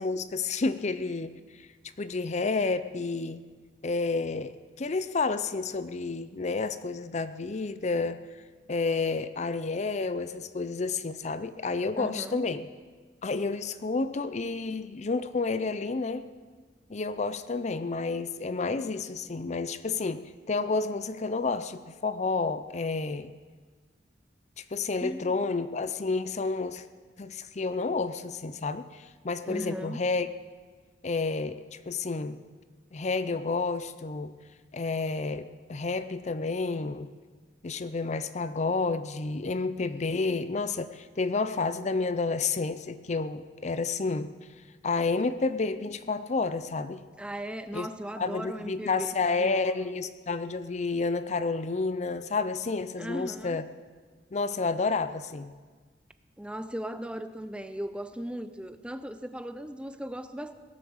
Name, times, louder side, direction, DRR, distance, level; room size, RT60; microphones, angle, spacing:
voice 1, 0.0-1.7 2.0-3.4 3.8-8.2 8.7-12.7 13.2-16.2 16.9-23.3 24.6-26.8 27.2-30.3 31.0-31.6 31.9-32.4 32.9-34.3 34.7-37.1 37.6-44.3 44.8-47.0 47.7-47.9 48.2-53.6 54.3-55.5, left 3 dB, 40° left, 13 dB, 0.5 m, -30 dB
voice 2, 12.0-12.4 25.0-25.3 29.4-30.0 47.2-49.6 53.0-53.6 56.4-60.5, right 1 dB, 5° right, 10 dB, 0.6 m, -37 dB
18.0 x 11.0 x 7.2 m, 1.5 s
head